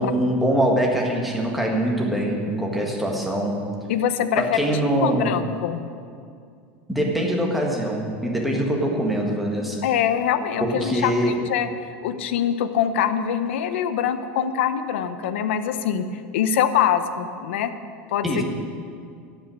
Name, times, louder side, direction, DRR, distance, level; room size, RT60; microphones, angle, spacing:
voice 1, 0.0-3.6 4.4-5.3 6.9-9.8 10.6-11.4 18.2-18.4, right 1 dB, ahead, -1 dB, 1.5 m, -23 dB
voice 2, 3.9-4.6 5.0-5.8 9.8-11.1 11.5-11.7 12.0-16.0 16.3-17.7 18.1-18.2, left 9 dB, 90° left, 11 dB, 0.8 m, -23 dB
13.5 x 5.6 x 9.6 m, 2.3 s
supercardioid pair, 170°, 6 cm